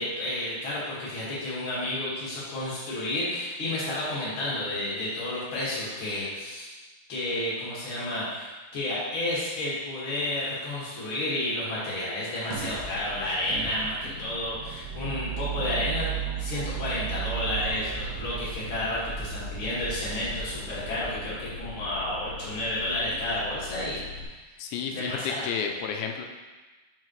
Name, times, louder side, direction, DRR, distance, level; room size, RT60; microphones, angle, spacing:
voice 1, 0.0-6.7 7.1-24.0 24.9-25.4, left 1 dB, 60° left, -8 dB, 1.3 m, -31 dB
sound 1, 12.5-24.2, right 5 dB, 70° right, 2.7 m, -36 dB
voice 2, 24.6-26.2, left 6 dB, 85° left, 4 dB, 2.6 m, -31 dB
7.5 x 5.5 x 3.1 m, 1.2 s
omnidirectional pair, 5.5 m